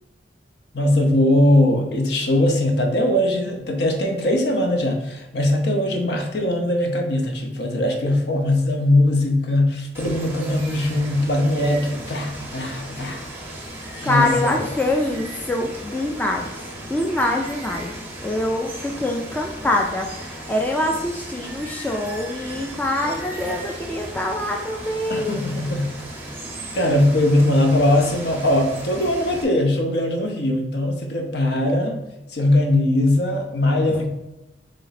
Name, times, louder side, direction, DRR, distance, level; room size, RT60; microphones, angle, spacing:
voice 1, 0.7-13.2 14.0-14.5 25.1-25.9 26.7-32.0 32.3-34.1, left 1 dB, 60° left, 3 dB, 0.8 m, -20 dB
Water, 9.9-29.4, right 1 dB, 10° right, 0.7 m, -36 dB
voice 2, 14.0-25.4 33.9-34.1, left 1 dB, 10° left, 1 dB, 0.3 m, -25 dB
3.9 x 3.3 x 4.0 m, 0.94 s
head